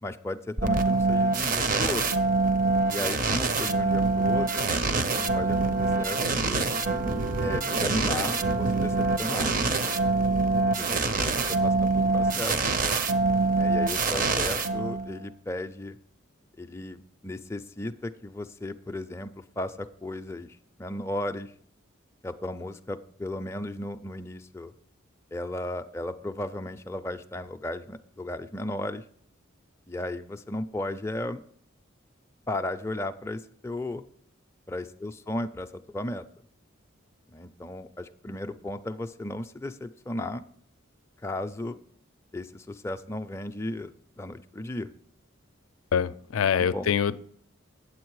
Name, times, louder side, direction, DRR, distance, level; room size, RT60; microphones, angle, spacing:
voice 1, 0.0-2.0 2.9-4.7 5.1-6.7 7.4-9.5 10.8-12.6 13.5-16.0 16.6-21.5 22.2-24.7 25.3-29.0 29.9-31.4 32.5-34.0 34.7-36.2 37.3-40.4 41.2-41.8 42.3-44.9 46.6-46.9, left 1 dB, 15° left, 6 dB, 0.4 m, -35 dB
sound 1, 0.6-15.2, right 3 dB, 40° right, 0.6 m, -25 dB
voice 2, 45.9-47.2, left 7 dB, 85° left, 13 dB, 0.4 m, -25 dB
8.8 x 7.7 x 4.7 m, 0.63 s
head